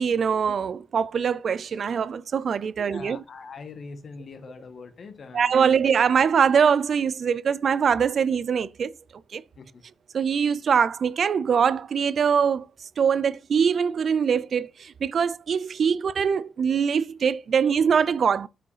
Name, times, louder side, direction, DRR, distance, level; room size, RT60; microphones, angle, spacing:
voice 1, 0.0-3.2 5.3-8.9 9.3-9.4 10.1-18.5, right 7 dB, 55° right, 0.5 m, -23 dB
voice 2, 2.9-5.7 9.5-9.8, left 4 dB, 55° left, 1.6 m, -42 dB
8.2 x 5.0 x 4.9 m
cardioid pair, 90°, 0 cm